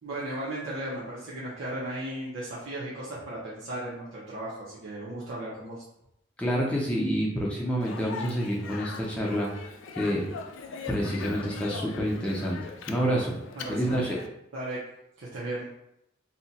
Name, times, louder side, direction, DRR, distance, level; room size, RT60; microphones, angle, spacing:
voice 1, 0.0-5.8 13.5-13.9 14.5-14.8 15.2-15.7, right 1 dB, 70° right, -7 dB, 0.7 m, -36 dB
voice 2, 6.4-9.5 9.9-10.3 10.9-13.3 13.7-14.2, equal, 5° left, -4 dB, 0.5 m, -28 dB
Speech, 7.8-14.3, left 5 dB, 80° left, 0.3 m, -41 dB
2.7 x 2.2 x 4.0 m, 0.80 s
head